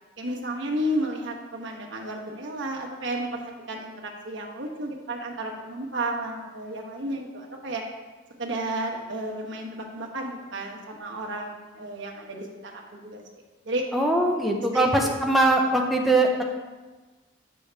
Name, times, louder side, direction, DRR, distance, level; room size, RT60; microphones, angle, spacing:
voice 1, 0.2-7.8 8.4-13.2 13.6-13.8 14.7-15.2, right 1 dB, 75° right, 0 dB, 1.1 m, -32 dB
voice 2, 13.9-16.4, right 2 dB, ahead, 0 dB, 0.6 m, -21 dB
8.5 x 6.3 x 3.4 m, 1.3 s
head